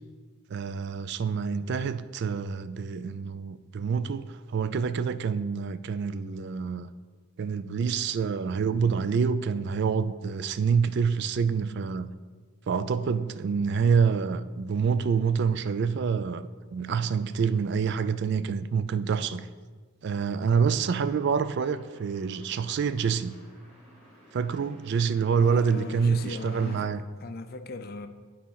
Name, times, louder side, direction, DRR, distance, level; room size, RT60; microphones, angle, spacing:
voice 1, 0.5-6.9 7.4-12.1 12.7-19.5 20.0-23.3 24.3-27.0, right 6 dB, 50° right, 0.3 m, -27 dB
sound 1, 20.5-26.8, equal, 30° right, 2.1 m, -54 dB
voice 2, 25.4-28.1, left 3 dB, 45° left, 0.4 m, -38 dB
8.4 x 4.3 x 5.6 m
head